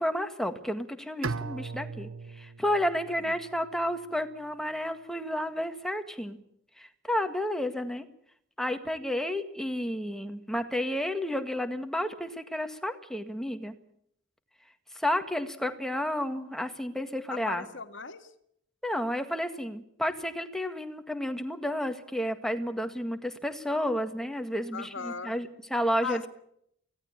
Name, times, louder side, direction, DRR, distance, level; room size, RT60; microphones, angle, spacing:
voice 1, 0.0-6.4 6.8-8.1 8.6-13.7 14.9-17.7 18.8-26.2, equal, ahead, 7 dB, 1.8 m, -31 dB
Bowed string instrument, 1.2-4.3, right 4 dB, 85° right, 0.9 m, -39 dB
voice 2, 17.3-18.3 24.7-25.4 26.0-26.3, left 5 dB, 65° left, 9 dB, 1.9 m, -38 dB
24.5 x 17.0 x 8.8 m, 0.72 s
head